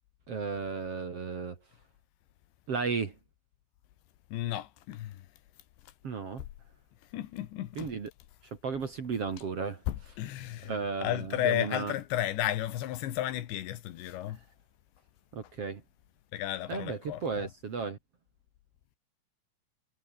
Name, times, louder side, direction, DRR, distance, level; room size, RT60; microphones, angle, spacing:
voice 1, 0.3-1.6 2.7-3.1 6.0-6.4 7.8-8.1 8.6-9.8 10.6-11.9 15.3-15.8 16.7-18.0, right 5 dB, 40° right, 2.5 m, -34 dB
voice 2, 4.3-5.2 7.1-7.9 9.9-10.7 11.0-14.4 16.3-17.5, left 13 dB, 80° left, 3.8 m, -33 dB
omnidirectional pair, 5.1 m